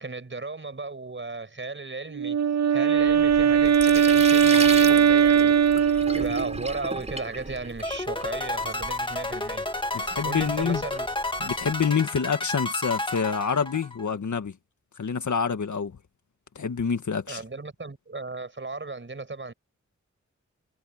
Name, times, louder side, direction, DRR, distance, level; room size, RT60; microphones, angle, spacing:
voice 1, 0.0-5.5 5.9-11.1 17.3-19.5, right 3 dB, 40° right, 6.2 m, -36 dB
Wind instrument woodwind instrument, 2.1-6.7, right 7 dB, 65° right, 0.7 m, -19 dB
Sink (filling or washing), 3.0-11.8, right 2 dB, 25° right, 3.8 m, -37 dB
sound 1, 7.8-14.1, left 2 dB, 15° left, 1.8 m, -31 dB
voice 2, 9.9-10.8 11.4-14.6 15.0-16.0 16.6-17.4, left 6 dB, 85° left, 1.8 m, -27 dB
wide cardioid pair, 110°, 29 cm